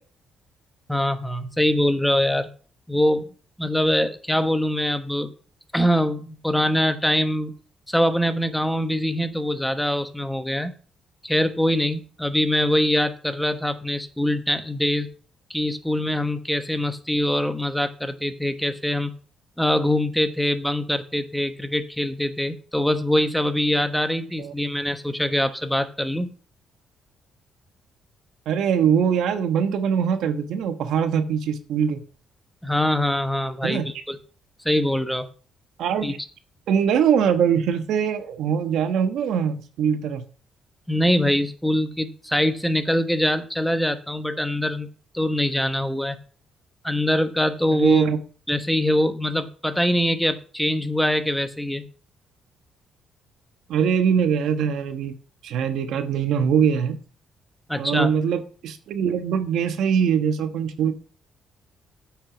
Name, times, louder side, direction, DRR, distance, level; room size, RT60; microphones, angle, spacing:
voice 1, 0.9-2.5 2.9-3.3 3.6-5.3 5.7-7.5 7.9-10.7 11.2-15.1 15.5-19.1 19.6-26.3 32.6-34.2 34.6-35.3 36.0-36.1 40.9-44.9 45.1-46.2 46.8-48.1 48.5-51.8 57.7-58.1, left 1 dB, 5° left, 1.2 m, -23 dB
voice 2, 28.5-32.0 33.6-33.9 35.8-36.2 36.7-40.2 47.7-48.2 53.7-55.1 55.4-57.0 57.8-60.9, right 7 dB, 80° right, 1.1 m, -22 dB
8.8 x 6.2 x 6.1 m
cardioid pair, 90°, 0 cm